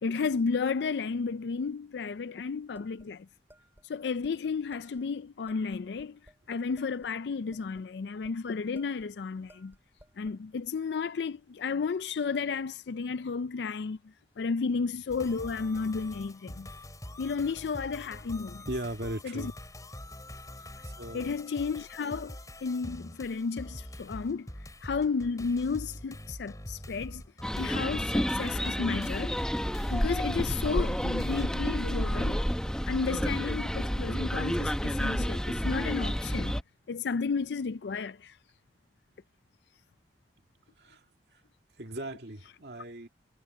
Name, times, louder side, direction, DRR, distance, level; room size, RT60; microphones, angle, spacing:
voice 1, 0.0-3.3 3.8-6.2 6.5-9.7 10.2-14.0 14.4-16.7 17.2-18.7 19.2-19.5 21.1-24.5 24.8-27.2 27.6-29.4 29.9-32.4 32.9-36.6 36.9-38.4 42.4-42.6, left 5 dB, 70° left, 0.4 m, -33 dB
sound 1, 2.7-3.9 4.2-4.3 4.7-5.1 5.5-6.4 6.8-8.4 8.7-9.1 9.5-10.4, right 1 dB, 15° right, 4.9 m, -59 dB
sound 2, 15.1-31.5, left 1 dB, 20° left, 4.7 m, -44 dB
voice 2, 18.7-19.5 20.8-21.4 40.8-41.0 41.3-41.4 41.8-43.1, right 1 dB, 70° right, 2.3 m, -38 dB
sound 3, 27.4-36.6, equal, 5° left, 1.2 m, -30 dB
head